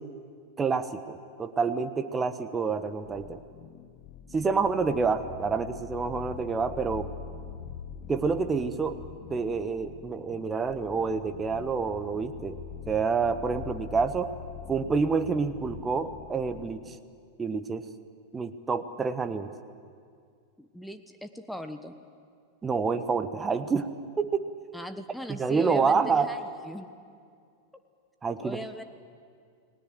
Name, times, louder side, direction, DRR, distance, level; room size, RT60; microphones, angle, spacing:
voice 1, 0.6-3.4 4.3-7.1 8.1-9.0 9.3-12.6 12.9-14.3 14.7-17.0 17.4-17.8 18.3-19.5 22.6-23.9 24.2-24.4 25.3-26.3 28.2-28.6, right 5 dB, 15° right, 10 dB, 1.1 m, -28 dB
sound 1, 3.0-17.0, left 8 dB, 40° left, 1.4 m, -44 dB
voice 2, 20.6-21.9 24.7-26.9 28.4-28.8, equal, ahead, 8 dB, 1.1 m, -40 dB
29.5 x 20.0 x 7.8 m, 2.2 s
figure-of-eight pair, 90°, 0 cm